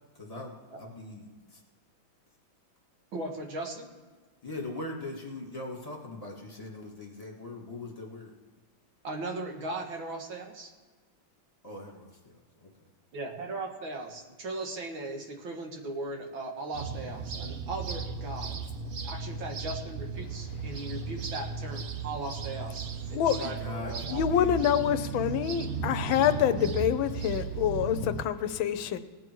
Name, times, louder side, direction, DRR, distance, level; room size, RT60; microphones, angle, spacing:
voice 1, 0.2-1.2 1.5-1.6 4.4-8.4 11.6-12.4 12.6-12.9 23.6-24.9 25.7-25.9, left 2 dB, 20° left, -1 dB, 2.0 m, -41 dB
voice 2, 3.1-3.9 9.0-10.7 13.1-18.5 19.0-24.3, right 2 dB, 70° right, 3 dB, 2.3 m, -38 dB
sound 1, 16.7-28.2, right 5 dB, 55° right, 0.7 m, -36 dB
voice 3, 23.1-23.5 24.1-29.0, left 10 dB, 75° left, 12 dB, 1.4 m, -26 dB
18.5 x 8.6 x 4.6 m, 1.4 s
omnidirectional pair, 2.3 m